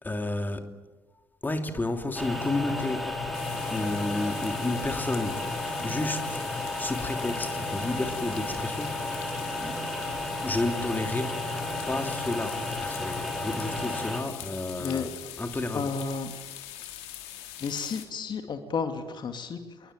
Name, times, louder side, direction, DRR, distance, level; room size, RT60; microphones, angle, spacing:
voice 1, 0.0-0.7 1.4-3.2 3.7-5.4 5.8-6.4 6.8-9.3 9.5-9.8 10.4-11.4 11.9-15.1 15.4-15.9, left 2 dB, 15° left, 6 dB, 3.0 m, -31 dB
sound 1, 2.1-14.2, left 2 dB, ahead, 6.2 m, -33 dB
sound 2, 3.3-18.1, left 12 dB, 60° left, 3.4 m, -43 dB
voice 2, 15.7-16.3 17.6-19.9, left 5 dB, 40° left, 7 dB, 2.7 m, -32 dB
28.0 x 22.5 x 9.3 m, 1.2 s
figure-of-eight pair, 50°, 12 cm